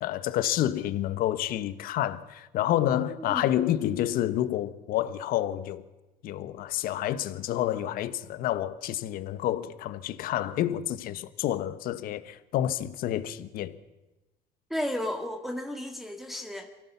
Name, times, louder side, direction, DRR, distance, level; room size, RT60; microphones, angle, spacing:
voice 1, 0.0-5.8 6.2-13.8, left 12 dB, 70° left, 1.2 m, -29 dB
voice 2, 14.7-16.7, left 1 dB, ahead, 1.8 m, -33 dB
24.0 x 16.5 x 7.1 m
supercardioid pair, 95°, 16 cm